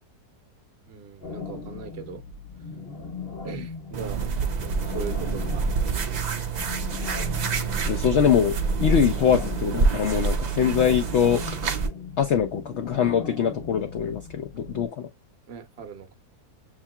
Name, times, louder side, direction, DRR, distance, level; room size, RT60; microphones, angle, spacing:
voice 1, 0.9-2.2 3.4-6.4 15.5-16.2, right 6 dB, 50° right, 0.9 m, -40 dB
sound 1, 1.2-14.9, left 4 dB, 45° left, 1.0 m, -39 dB
sound 2, 3.9-11.9, right 4 dB, 70° right, 0.4 m, -27 dB
voice 2, 7.9-8.5 8.8-11.4 12.2-15.1, left 8 dB, 65° left, 0.7 m, -23 dB
7.1 x 2.8 x 2.2 m
omnidirectional pair, 1.7 m